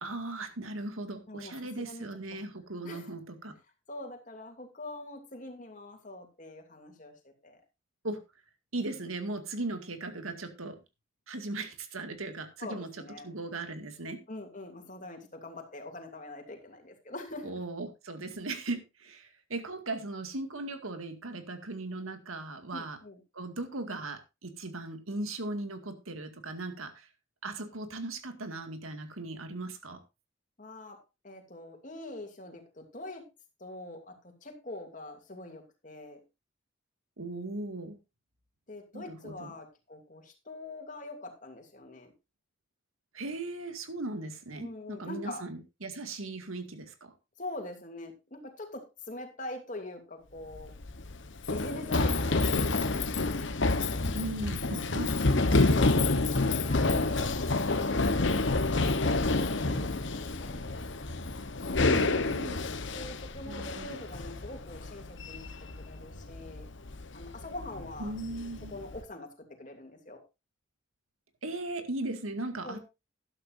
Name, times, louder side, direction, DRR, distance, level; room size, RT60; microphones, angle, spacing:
voice 1, 0.0-3.5 8.0-8.2 8.7-10.8 11.3-12.9 13.2-14.2 17.4-23.0 23.3-27.1 27.4-30.0 37.2-38.0 38.9-39.5 43.1-47.1 54.1-55.1 62.0-62.6 63.5-64.0 68.0-68.7 71.4-72.8, right 2 dB, 90° right, 7 dB, 2.1 m, -38 dB
voice 2, 1.3-2.1 2.3-2.4 2.8-3.1 3.9-7.6 12.6-13.3 14.3-17.5 22.7-23.2 30.6-33.3 33.6-36.2 38.7-42.1 44.6-45.5 47.4-50.7 51.5-53.4 56.0-60.6 62.9-65.5 65.8-66.7 67.1-68.1 68.7-70.2 72.6-72.8, left 2 dB, 40° left, 3 dB, 2.8 m, -44 dB
Run, 50.4-69.0, left 2 dB, 60° left, 1.1 m, -29 dB
12.5 x 12.0 x 2.6 m, 0.26 s
head